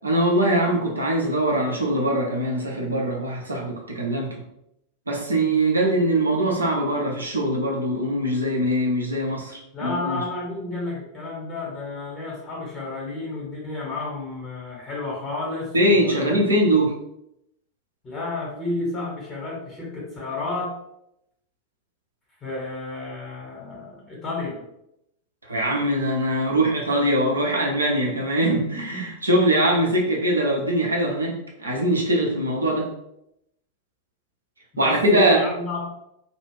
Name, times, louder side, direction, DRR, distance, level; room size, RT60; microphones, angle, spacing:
voice 1, 0.0-4.3 5.1-10.2 15.7-16.9 25.5-32.9 34.8-35.4, right 1 dB, 80° right, -2 dB, 0.6 m, -22 dB
voice 2, 9.7-16.4 18.0-20.8 22.4-24.6 34.7-35.9, left 2 dB, 25° left, -4 dB, 0.9 m, -31 dB
2.4 x 2.0 x 3.3 m, 0.81 s
figure-of-eight pair, 90°, 0 cm